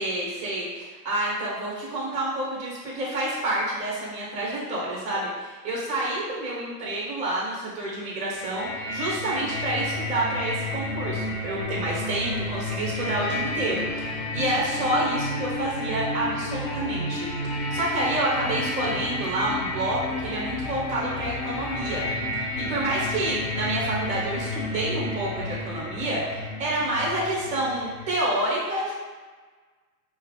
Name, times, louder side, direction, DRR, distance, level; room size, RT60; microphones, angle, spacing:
voice 1, 0.0-22.0 22.6-29.0, right 1 dB, 15° right, -5 dB, 1.2 m, -28 dB
sound 1, 8.3-28.1, left 1 dB, 40° left, 0.8 m, -31 dB
5.6 x 2.1 x 3.7 m, 1.4 s
supercardioid pair, 165°, 49 cm